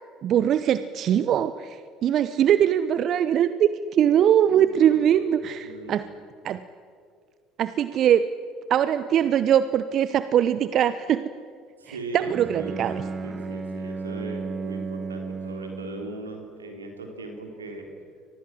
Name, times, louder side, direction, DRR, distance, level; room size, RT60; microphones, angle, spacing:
voice 1, 0.2-6.1 6.4-6.6 7.6-8.3 8.7-11.2 11.9-13.0, right 10 dB, 50° right, 13 dB, 0.8 m, -22 dB
voice 2, 4.4-5.0 5.4-6.1 11.8-17.9, right 3 dB, 85° right, 3 dB, 3.8 m, -38 dB
Bowed string instrument, 12.2-16.3, right 4 dB, 35° right, 1.6 m, -34 dB
30.0 x 23.5 x 7.7 m, 2.2 s
figure-of-eight pair, 60°, 0 cm